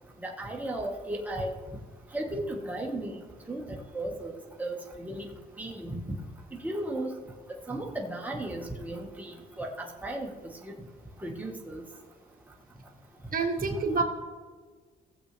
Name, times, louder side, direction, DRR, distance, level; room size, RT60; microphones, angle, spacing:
voice 1, 0.2-1.5 2.1-3.1 3.5-3.6 3.9-5.2 5.6-6.0 6.6-7.1 7.7-9.3 9.6-10.3 10.6-10.7 11.2-11.8, right 1 dB, 10° right, -1 dB, 1.6 m, -35 dB
voice 2, 13.3-14.0, right 4 dB, 45° right, 3 dB, 1.6 m, -27 dB
17.5 x 7.5 x 3.4 m, 1.5 s
cardioid pair, 90°, 20 cm